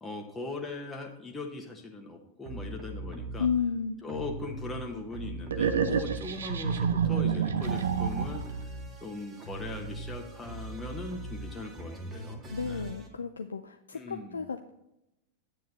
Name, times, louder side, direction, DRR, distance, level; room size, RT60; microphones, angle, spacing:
voice 1, 0.0-3.5 4.0-8.6 9.0-12.9 13.9-14.4, left 2 dB, 10° left, 1 dB, 1.3 m, -40 dB
sound 1, 2.4-3.6 4.0-6.5 6.7-13.1, right 2 dB, 30° right, 2.0 m, -40 dB
voice 2, 3.4-4.0 12.5-14.7, left 6 dB, 75° left, 7 dB, 0.4 m, -32 dB
sound 2, 5.5-8.6, right 7 dB, 65° right, 0.7 m, -28 dB
9.9 x 9.0 x 3.0 m, 0.88 s
figure-of-eight pair, 90°, 0 cm